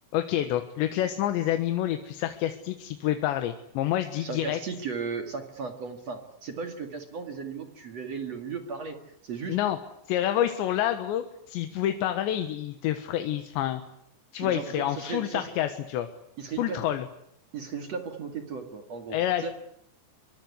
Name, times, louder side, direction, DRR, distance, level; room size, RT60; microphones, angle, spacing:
voice 1, 0.1-4.6 9.5-9.8 10.1-13.8 14.3-16.1 16.6-17.1 19.1-19.5, left 12 dB, 80° left, 8 dB, 3.6 m, -28 dB
voice 2, 4.2-9.0 9.2-9.6 14.3-15.5 16.4-16.8 17.5-19.5, right 5 dB, 45° right, 6 dB, 2.6 m, -36 dB
25.0 x 23.0 x 9.7 m, 0.75 s
omnidirectional pair, 5.2 m